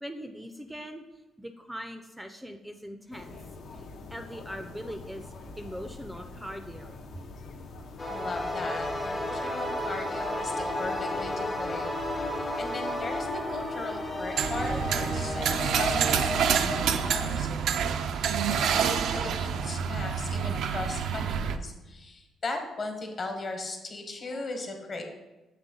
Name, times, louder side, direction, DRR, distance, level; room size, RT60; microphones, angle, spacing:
voice 1, 0.0-1.0 1.4-3.4 3.7-7.0, equal, 5° right, 6 dB, 0.4 m, -41 dB
sound 1, 3.1-17.5, left 2 dB, 70° left, 0.6 m, -45 dB
sound 2, 8.0-16.8, left 1 dB, 25° left, 0.7 m, -33 dB
voice 2, 8.1-11.9 12.2-25.0, left 3 dB, 45° left, 4 dB, 1.2 m, -38 dB
sound 3, 14.4-21.6, right 7 dB, 75° right, 0.3 m, -27 dB
7.5 x 3.4 x 3.8 m, 1.1 s
cardioid pair, 90°, 0 cm